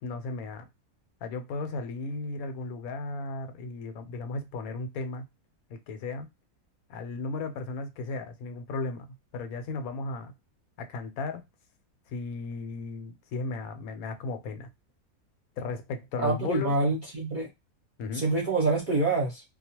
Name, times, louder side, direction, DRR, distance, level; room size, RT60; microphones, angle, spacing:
voice 1, 0.0-0.7 1.2-5.2 5.7-6.3 6.9-10.3 10.8-11.4 12.1-14.7 15.6-16.7 18.0-18.3, left 3 dB, 80° left, 1.1 m, -35 dB
voice 2, 16.2-17.5 18.1-19.4, right 3 dB, 40° right, 0.8 m, -26 dB
2.3 x 2.3 x 2.8 m
omnidirectional pair, 1.5 m